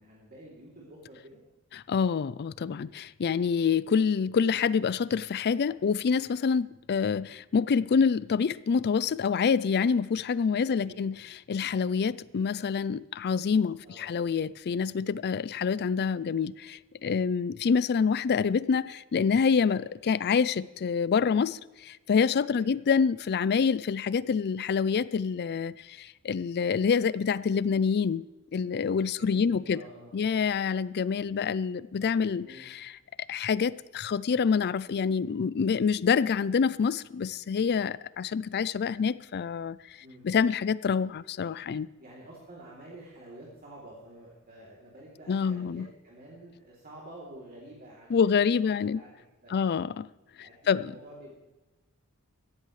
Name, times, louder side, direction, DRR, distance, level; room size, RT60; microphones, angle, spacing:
voice 1, 0.0-1.4 3.7-3.8 10.5-11.0 13.8-14.1 15.2-15.7 22.5-22.8 29.2-30.4 32.4-32.7 40.0-40.2 42.0-48.4 48.9-49.1 49.4-49.7 50.4-51.4, right 1 dB, 45° right, 3.1 m, -49 dB
voice 2, 1.7-28.2 28.5-29.8 30.1-32.9 33.3-39.8 40.2-41.9 45.3-45.9 48.1-49.0 49.5-50.1 50.4-50.9, left 6 dB, 50° left, 0.4 m, -27 dB
17.0 x 14.0 x 3.2 m
head